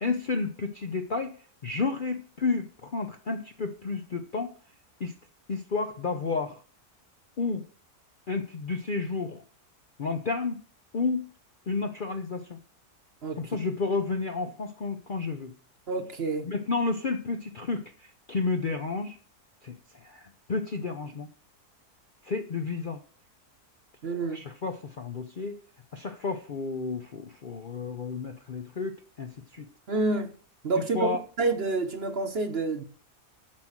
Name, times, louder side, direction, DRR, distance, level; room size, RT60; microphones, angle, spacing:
voice 1, 0.0-1.4 1.6-4.5 5.0-5.1 5.5-6.6 7.4-7.7 8.3-9.4 10.0-10.6 10.9-11.3 11.7-12.6 13.4-15.5 16.5-19.2 19.6-21.3 22.2-23.0 24.3-25.6 25.9-29.7 30.9-31.2, left 4 dB, 50° left, 0.6 m, -31 dB
voice 2, 15.9-16.5 24.0-24.4 29.9-30.3 30.6-32.8, right 3 dB, 45° right, 1.0 m, -28 dB
8.9 x 6.1 x 7.3 m
omnidirectional pair, 1.7 m